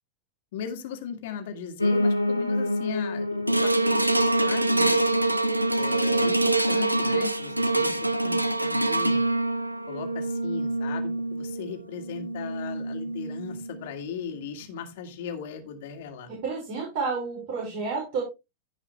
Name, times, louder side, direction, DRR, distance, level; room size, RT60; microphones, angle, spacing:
voice 1, 0.5-4.9 5.8-9.2 9.9-16.3, left 7 dB, 55° left, 5 dB, 2.2 m, -37 dB
Piano, 1.8-10.9 11.3-12.5 12.7-12.8 13.1-13.2 13.4-13.5 14.1-14.2, left 1 dB, 85° left, 1.2 m, -31 dB
sound 1, 3.5-13.9 14.4-14.5, right 2 dB, 85° right, 0.8 m, -25 dB
voice 2, 16.4-18.2, right 4 dB, 50° right, -3 dB, 5.6 m, -30 dB
15.5 x 5.6 x 3.3 m, 0.25 s
figure-of-eight pair, 90°, 0 cm